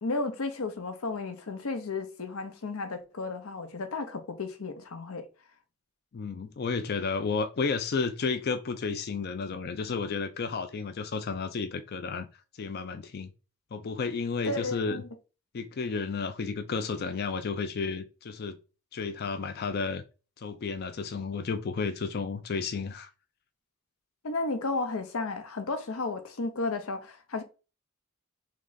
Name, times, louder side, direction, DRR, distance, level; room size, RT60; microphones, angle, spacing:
voice 1, 0.0-5.3 14.4-15.0 24.2-27.4, left 3 dB, 75° left, 0.7 m, -33 dB
voice 2, 6.1-12.3 12.6-13.3 13.7-15.0 15.5-18.5 18.9-20.0 20.4-23.1, left 4 dB, 45° left, 0.4 m, -32 dB
3.7 x 3.2 x 3.8 m
head